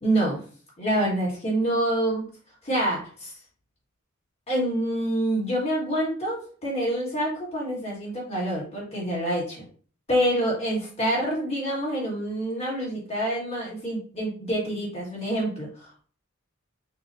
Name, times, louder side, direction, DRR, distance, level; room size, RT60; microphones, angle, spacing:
voice 1, 0.0-0.4 0.8-2.3 2.6-3.3 4.5-9.6 10.1-16.0, right 1 dB, 30° left, -5 dB, 1.8 m, -27 dB
6.0 x 2.5 x 2.7 m, 0.42 s
head